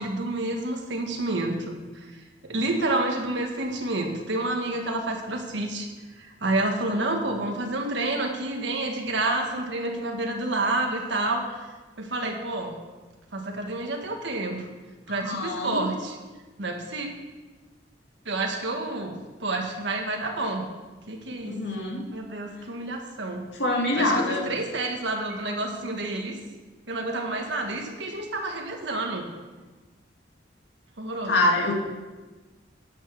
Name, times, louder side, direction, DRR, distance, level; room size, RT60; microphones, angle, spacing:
voice 1, 0.0-5.9 6.2-11.6 12.0-12.8 13.3-14.7 15.1-16.2 16.6-17.1 18.2-20.7 21.1-21.5 22.1-23.5 24.0-26.4 26.9-29.3 31.0-31.3, right 2 dB, 70° right, 3 dB, 1.5 m, -29 dB
voice 2, 15.1-15.8 21.4-22.1 23.5-24.4 31.3-31.7, left 2 dB, 70° left, -1 dB, 2.1 m, -25 dB
10.0 x 6.1 x 7.1 m, 1.3 s
head